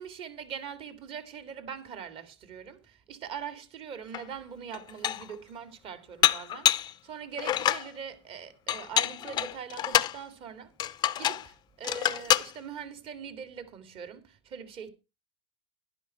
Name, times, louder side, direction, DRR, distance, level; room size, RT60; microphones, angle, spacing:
voice 1, 0.0-10.7 11.2-14.9, right 7 dB, 35° right, 2.5 m, -42 dB
Dishes pots and pans, 4.1-4.2 4.7-5.3 6.2-6.9 7.4-7.9 8.7-10.2 10.8-11.5 11.8-12.5, left 11 dB, 30° left, 0.6 m, -26 dB
12.0 x 10.5 x 4.4 m
supercardioid pair, 130°, 15 cm